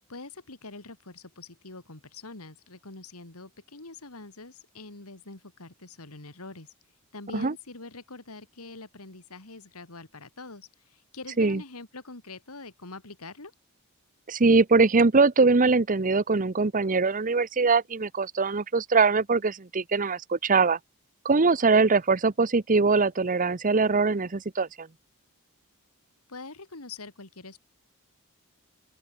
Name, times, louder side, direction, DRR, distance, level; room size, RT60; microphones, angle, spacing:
voice 1, 0.1-6.7 7.1-13.5 26.3-27.6, left 3 dB, 80° left, 2.9 m, -44 dB
voice 2, 14.3-20.8 21.2-24.9, right 4 dB, 40° right, 0.8 m, -22 dB
open air
head